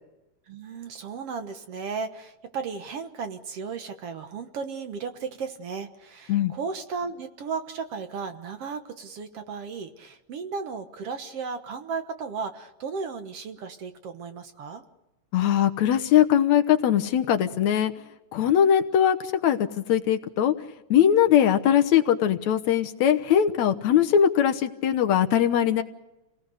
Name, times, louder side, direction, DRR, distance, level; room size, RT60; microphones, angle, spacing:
voice 1, 0.5-14.8, right 5 dB, 60° right, 7 dB, 2.1 m, -35 dB
voice 2, 15.3-17.9 18.3-20.5 20.9-25.8, left 9 dB, 70° left, 6 dB, 2.3 m, -21 dB
29.0 x 18.5 x 6.5 m, 0.99 s
omnidirectional pair, 3.3 m